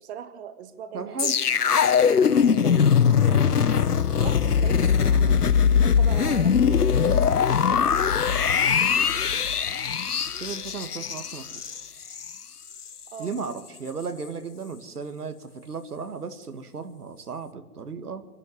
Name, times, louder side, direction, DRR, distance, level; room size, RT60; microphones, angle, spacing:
voice 1, 0.0-1.6 2.1-2.9 4.1-5.3 5.8-8.2 8.6-9.3 13.1-13.4, right 9 dB, 45° right, 10 dB, 1.6 m, -41 dB
voice 2, 0.9-1.3 2.9-4.1 5.0-5.4 10.3-11.5 13.2-18.2, right 5 dB, 80° right, 8 dB, 1.8 m, -36 dB
sound 1, 1.2-12.4 12.7-12.9, left 7 dB, 90° left, 0.9 m, -21 dB
24.0 x 12.0 x 9.4 m, 1.4 s
figure-of-eight pair, 125°, 45 cm